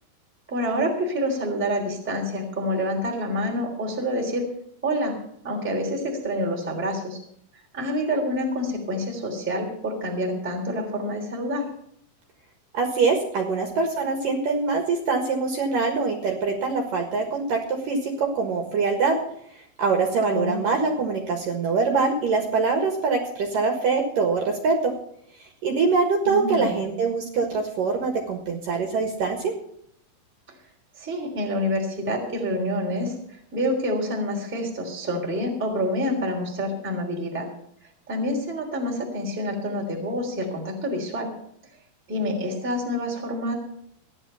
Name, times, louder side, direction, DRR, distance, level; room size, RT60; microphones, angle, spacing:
voice 1, 0.5-4.5 4.8-5.1 5.4-7.2 7.7-11.6 20.2-20.6 26.2-26.9 31.0-33.1 33.5-37.5 38.1-41.3 42.1-43.5, equal, 5° right, 0 dB, 2.0 m, -27 dB
voice 2, 12.7-19.2 19.8-24.9 25.6-29.5, right 4 dB, 60° right, 3 dB, 2.8 m, -24 dB
15.5 x 10.5 x 5.7 m, 0.69 s
omnidirectional pair, 5.4 m